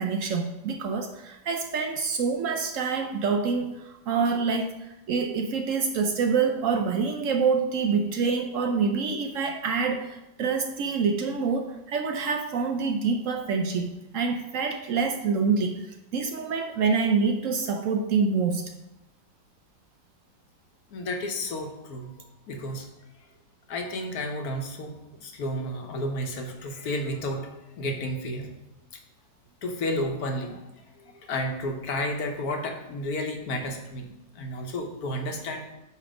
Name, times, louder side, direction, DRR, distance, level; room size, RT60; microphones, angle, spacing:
voice 1, 0.0-4.7 5.1-15.8 16.1-18.7, right 5 dB, 65° right, 5 dB, 0.8 m, -26 dB
voice 2, 20.9-22.9 23.7-28.5 28.9-29.0 29.6-35.6, left 1 dB, 65° left, 3 dB, 1.4 m, -32 dB
8.3 x 3.3 x 5.1 m, 0.92 s
omnidirectional pair, 1.8 m